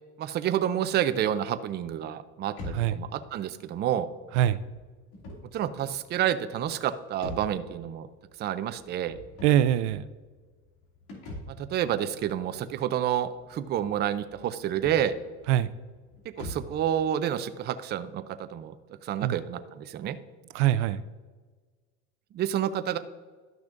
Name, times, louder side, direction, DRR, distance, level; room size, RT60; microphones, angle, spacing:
voice 1, 0.2-4.1 5.5-8.1 8.4-9.2 11.6-15.1 16.4-18.7 19.0-20.2 22.3-23.0, right 10 dB, 30° right, 11 dB, 0.4 m, -29 dB
sound 1, 2.5-16.8, left 1 dB, 65° left, 2.5 m, -45 dB
voice 2, 9.4-10.0 15.5-15.7 19.2-19.4 20.5-21.0, right 12 dB, 85° right, 13 dB, 0.5 m, -23 dB
12.0 x 6.1 x 2.5 m, 1.4 s
supercardioid pair, 120°, 34 cm